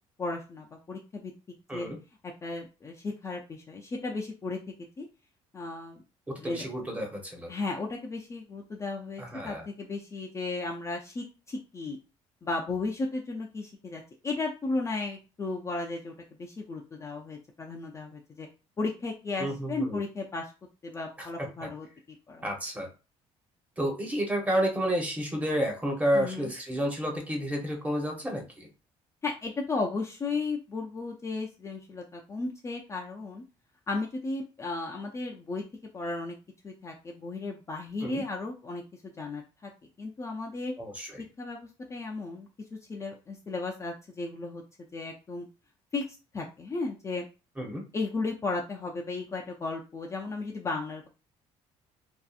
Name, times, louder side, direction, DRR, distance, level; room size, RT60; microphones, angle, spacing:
voice 1, 0.2-1.3 1.7-1.9 2.2-4.6 5.0-5.1 5.5-6.0 6.4-6.6 7.5-12.0 12.4-16.1 16.4-18.5 18.8-20.5 20.8-21.9 22.3-22.4 26.1-26.5 29.2-33.4 33.9-35.6 35.9-36.4 36.6-39.7 40.0-40.7 41.4-44.6 44.9-45.5 45.9-47.3 47.9-51.1, left 3 dB, 25° left, 0 dB, 0.4 m, -35 dB
voice 2, 6.4-7.5 9.2-9.6 19.4-20.0 21.2-21.3 21.6-21.7 22.4-22.9 23.8-28.7 38.0-38.2 40.8-41.3 47.6-47.8, equal, 10° right, 1 dB, 0.8 m, -30 dB
2.7 x 2.4 x 2.3 m, 0.31 s
cardioid pair, 115°, 13 cm